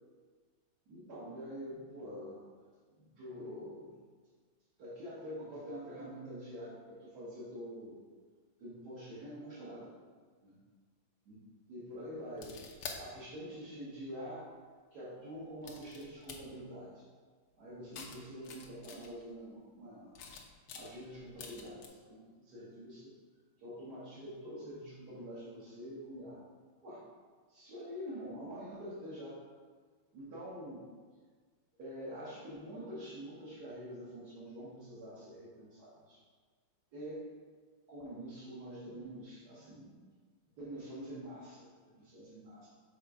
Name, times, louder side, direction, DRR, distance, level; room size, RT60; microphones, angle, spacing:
voice 1, 0.9-2.5 3.0-3.9 4.8-8.0 8.6-9.9 10.4-10.6 11.3-12.7 13.0-14.5 14.9-17.1 17.6-20.2 20.7-23.1 23.6-26.4 26.8-27.0 27.5-29.4 30.1-30.9 31.8-36.2 36.9-37.3 37.9-40.1 40.6-42.7, equal, 50° right, -10 dB, 2.1 m, -46 dB
sound 1, 12.3-13.0 14.1-14.2 15.6-16.4 17.9-19.3 20.1-21.9, left 5 dB, 65° left, 1.5 m, -47 dB
6.6 x 4.4 x 4.9 m, 1.5 s
omnidirectional pair, 2.4 m